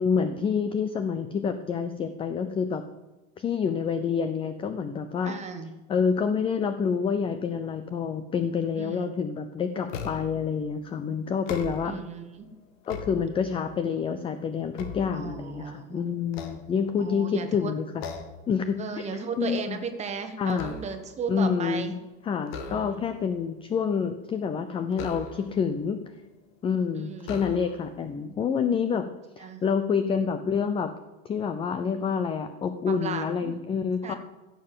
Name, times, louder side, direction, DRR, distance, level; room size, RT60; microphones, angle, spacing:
voice 1, 0.0-2.8 3.4-5.4 5.9-12.0 12.9-18.0 18.5-19.1 19.4-19.8 20.4-20.7 21.3-22.0 22.2-26.0 26.6-29.1 29.4-30.9 31.2-34.1, left 6 dB, 15° left, 10 dB, 0.5 m, -28 dB
voice 2, 5.2-5.7 8.8-9.1 11.9-12.5 15.1-16.0 17.0-17.7 18.8-21.9 22.6-23.0 26.9-27.4 29.4-29.6 32.9-33.6 34.0-34.2, right 6 dB, 20° right, 6 dB, 1.3 m, -35 dB
sound 1, 9.9-10.5 11.3-12.1 12.6-13.7 14.2-15.7 16.3-17.3 18.0-18.5 18.9-19.1 19.5-21.2 22.4-23.3 24.9-25.7 26.5-26.6 27.2-28.0, left 4 dB, 70° left, 1.7 m, -40 dB
16.0 x 6.8 x 6.7 m, 1.1 s
cardioid pair, 155°, 31 cm